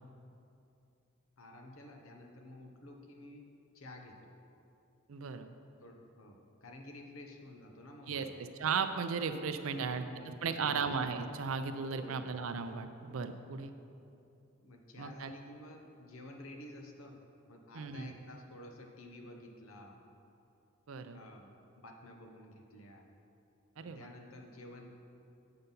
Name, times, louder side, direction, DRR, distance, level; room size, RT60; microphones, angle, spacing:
voice 1, 1.4-3.4 3.7-4.3 5.8-8.3 9.7-10.9 11.9-12.3 14.6-17.2 17.5-20.0 21.1-23.0 23.8-25.0, left 1 dB, 80° left, 2 dB, 0.9 m, -52 dB
voice 2, 5.1-5.5 8.1-8.3 8.6-13.7 15.0-15.3 17.7-18.1 20.9-21.2 23.8-24.1, right 5 dB, 80° right, 9 dB, 0.5 m, -36 dB
7.7 x 5.7 x 5.4 m, 2.6 s
head